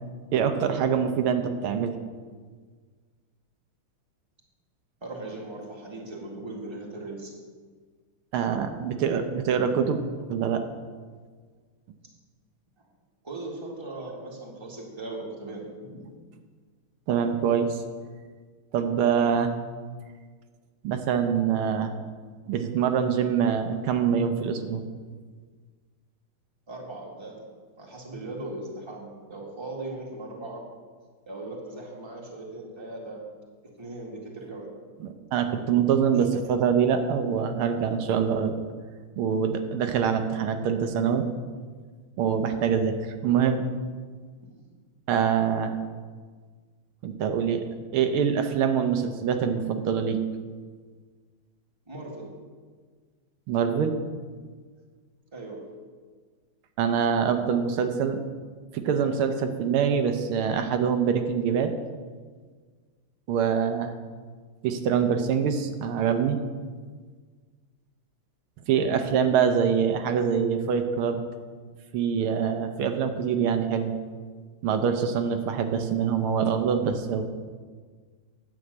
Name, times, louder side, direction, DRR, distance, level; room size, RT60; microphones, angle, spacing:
voice 1, 0.3-2.0 8.3-10.0 10.3-10.6 17.1-17.8 18.7-19.5 20.8-21.9 22.5-24.8 35.0-38.6 39.2-41.3 42.2-43.6 45.1-45.7 47.0-47.6 47.9-50.2 53.5-53.9 56.8-58.2 58.7-61.7 63.3-63.9 64.6-66.4 68.7-71.2 71.9-74.0 74.6-77.2, right 7 dB, 85° right, 6 dB, 1.7 m, -24 dB
voice 2, 5.0-7.3 12.8-12.9 13.2-16.1 26.7-27.5 27.8-30.6 31.3-33.2 33.8-34.7 39.3-39.4 44.4-44.5 51.9-52.3 55.3-55.6 64.7-64.8, right 2 dB, 15° right, -2 dB, 1.7 m, -38 dB
9.5 x 6.4 x 7.9 m, 1.5 s
omnidirectional pair, 2.3 m